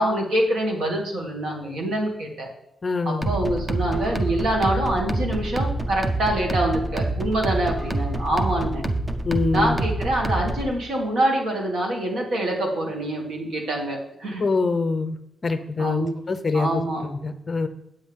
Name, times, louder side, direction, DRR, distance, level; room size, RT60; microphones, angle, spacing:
voice 1, 0.0-2.5 3.0-8.8 9.5-14.4 15.8-16.1 16.5-17.0, right 1 dB, 70° right, 0 dB, 2.3 m, -25 dB
voice 2, 2.8-3.3 9.2-9.8 14.4-15.2 15.4-16.8 17.1-17.7, left 3 dB, 30° left, 10 dB, 0.5 m, -24 dB
sound 1, 3.2-10.7, right 1 dB, 15° right, 0.6 m, -27 dB
9.3 x 8.1 x 3.6 m, 0.80 s
wide cardioid pair, 170°, 0 cm